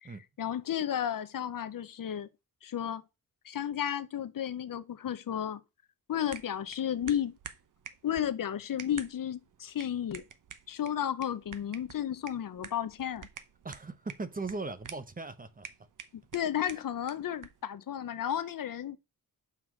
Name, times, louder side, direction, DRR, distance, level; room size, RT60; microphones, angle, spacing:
voice 1, 0.0-2.3 2.6-3.0 3.4-5.6 6.1-7.4 8.0-10.2 10.7-13.3 16.1-19.0, left 10 dB, 60° left, 0.7 m, -33 dB
sound 1, 6.3-17.7, right 8 dB, 55° right, 0.8 m, -50 dB
voice 2, 13.6-15.7 16.7-16.8, right 3 dB, 25° right, 0.7 m, -39 dB
5.7 x 4.8 x 6.2 m
wide cardioid pair, 150°, 37 cm